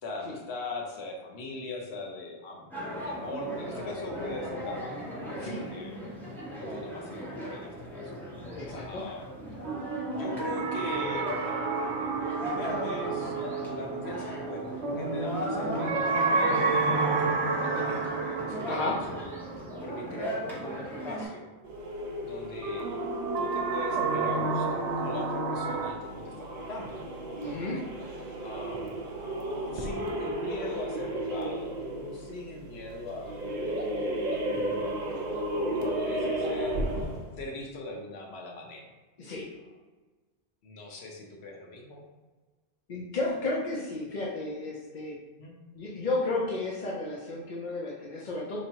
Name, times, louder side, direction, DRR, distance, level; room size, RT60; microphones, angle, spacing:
voice 1, 0.0-2.7 3.0-5.0 5.3-6.0 6.5-8.2 8.9-9.3 10.1-11.3 12.4-13.3 13.6-16.7 17.6-19.3 19.8-21.5 22.2-22.9 23.4-27.0 27.5-27.9 28.4-28.9 29.7-33.3 34.5-35.0 35.7-36.7 37.4-38.9 40.6-42.1 45.4-45.5, left 2 dB, 75° left, 1 dB, 1.0 m, -40 dB
sound 1, 2.7-21.3, equal, ahead, 0.8 m, -38 dB
voice 2, 8.6-9.0 17.7-18.0 18.7-18.9 27.4-27.8 39.2-39.5 42.9-45.1 45.8-48.6, left 2 dB, 50° left, -5 dB, 0.7 m, -33 dB
sound 2, 9.6-20.5 22.6-25.9, right 3 dB, 85° right, 0.9 m, -30 dB
sound 3, 21.6-37.3, right 1 dB, 50° right, 0.7 m, -34 dB
4.4 x 3.0 x 2.9 m, 1.2 s
omnidirectional pair, 1.1 m